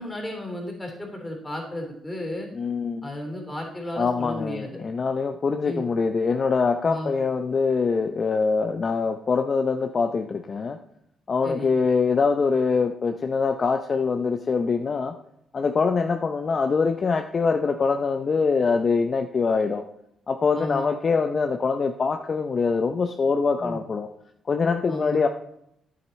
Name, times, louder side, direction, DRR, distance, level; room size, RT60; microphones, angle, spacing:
voice 1, 0.0-2.5 3.0-4.7 5.6-5.8 6.8-7.1 11.4-11.7 20.5-20.9 23.6-23.8 24.9-25.2, left 1 dB, 15° left, 1 dB, 3.2 m, -33 dB
voice 2, 2.5-3.1 4.0-10.8 11.3-15.1 15.5-19.8 20.3-24.1 24.5-25.3, left 5 dB, 40° left, 6 dB, 0.6 m, -24 dB
9.6 x 7.8 x 4.1 m, 0.75 s
cardioid pair, 90°, 0 cm